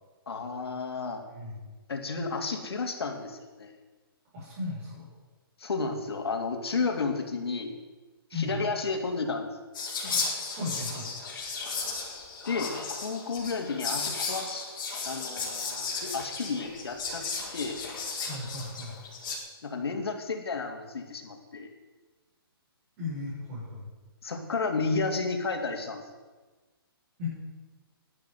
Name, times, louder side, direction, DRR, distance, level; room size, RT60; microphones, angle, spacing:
voice 1, 0.3-1.2 1.9-3.7 5.6-7.8 8.3-9.5 12.5-14.6 15.0-17.2 17.5-17.8 19.6-21.7 24.2-26.0, left 4 dB, 80° left, 4 dB, 3.1 m, -32 dB
voice 2, 1.3-1.7 4.3-5.0 8.3-8.6 10.5-11.1 18.2-19.0 23.0-23.8 27.2-27.3, left 3 dB, 25° right, -9 dB, 6.4 m, -36 dB
Whispering, 9.7-19.4, left 4 dB, 55° left, 4.9 m, -35 dB
12.5 x 10.5 x 9.5 m, 1.3 s
hypercardioid pair, 160°, 13 cm